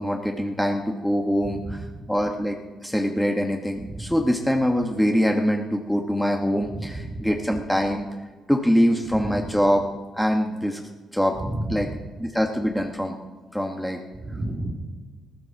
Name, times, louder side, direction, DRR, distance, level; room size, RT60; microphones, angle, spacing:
voice 1, 0.0-8.1 8.5-9.8 10.1-10.8 11.1-11.3 11.7-11.9 12.2-13.2 13.5-14.0, equal, 5° left, 2 dB, 1.4 m, -24 dB
voice 2, 1.5-1.8 3.8-4.1 6.7-7.3 9.1-9.4 11.3-11.9 14.2-14.7, right 1 dB, 35° right, 3 dB, 2.7 m, -32 dB
19.5 x 13.0 x 4.7 m, 1.4 s
cardioid pair, 90°, 0 cm